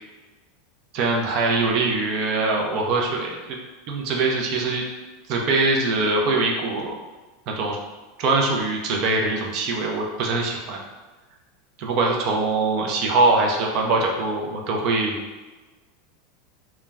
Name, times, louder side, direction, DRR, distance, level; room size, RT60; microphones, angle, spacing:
voice 1, 0.9-3.4 3.9-4.8 5.3-6.9 7.5-7.8 8.2-10.8 11.8-15.2, right 3 dB, 45° right, 0 dB, 0.4 m, -22 dB
2.2 x 2.0 x 3.3 m, 1.2 s
supercardioid pair, 150°, 0 cm